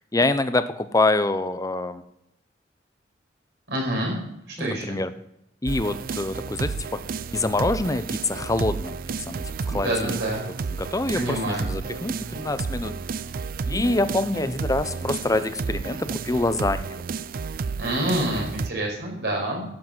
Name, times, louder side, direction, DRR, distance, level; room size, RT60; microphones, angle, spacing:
voice 1, 0.1-2.0 4.6-5.1 5.6-7.0 7.3-9.0 9.3-10.2 10.8-13.0 13.7-17.0, left 2 dB, 20° left, 12 dB, 0.7 m, -25 dB
voice 2, 3.7-4.2 4.6-5.0 9.7-10.4 11.1-11.7 17.8-19.7, right 1 dB, 65° right, -1 dB, 5.5 m, -27 dB
sound 1, 5.7-18.7, right 5 dB, 50° right, 0.4 m, -32 dB
12.5 x 8.5 x 6.0 m, 0.81 s
head